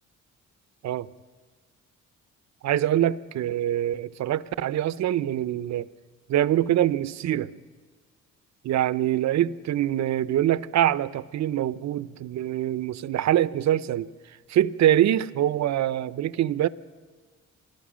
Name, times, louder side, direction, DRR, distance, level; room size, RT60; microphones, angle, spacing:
voice 1, 2.6-5.9 6.3-7.5 8.6-14.1 14.5-16.7, right 12 dB, 65° right, 0.7 m, -24 dB
26.5 x 20.0 x 6.3 m
cardioid pair, 90°, 30 cm